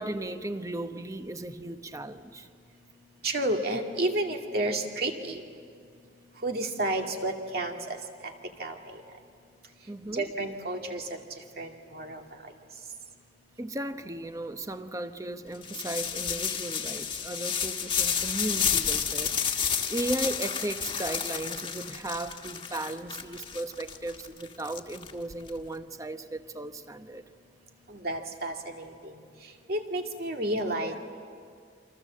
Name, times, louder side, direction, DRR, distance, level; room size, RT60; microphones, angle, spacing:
voice 1, 0.0-2.5 9.9-10.3 13.6-27.2, right 1 dB, 20° right, 9 dB, 0.9 m, -36 dB
voice 2, 3.2-5.4 6.4-8.0 8.6-9.0 10.1-11.1 11.6-12.2 27.9-29.1 29.7-31.0, right 1 dB, 60° right, 3 dB, 2.3 m, -31 dB
sound 1, 15.6-25.5, left 7 dB, 30° left, 1.5 m, -31 dB
29.0 x 25.5 x 7.5 m, 2.1 s
head